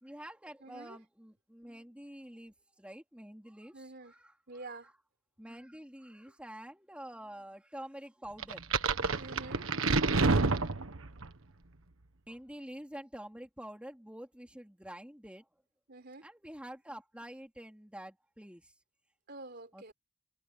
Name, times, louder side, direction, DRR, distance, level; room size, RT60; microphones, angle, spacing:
voice 1, 0.0-4.8 5.4-8.7 12.3-15.5 16.2-18.7 19.7-19.9, right 1 dB, 5° right, 3.0 m, -48 dB
voice 2, 0.6-1.0 3.7-4.1 4.5-4.9 9.2-9.7 15.9-16.3 19.3-19.9, right 2 dB, 50° right, 4.1 m, -47 dB
sound 1, 8.4-11.3, right 3 dB, 80° right, 1.4 m, -28 dB
head